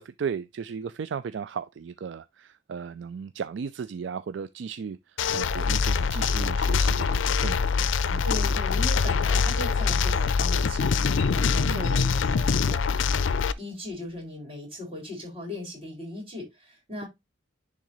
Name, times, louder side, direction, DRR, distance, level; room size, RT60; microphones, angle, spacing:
voice 1, 0.0-7.7 8.1-8.2 11.6-11.9, right 6 dB, 60° right, 0.3 m, -35 dB
sound 1, 5.2-13.5, left 5 dB, 70° left, 0.5 m, -24 dB
voice 2, 8.2-17.1, left 2 dB, 30° right, 4.2 m, -38 dB
10.5 x 3.7 x 3.0 m
head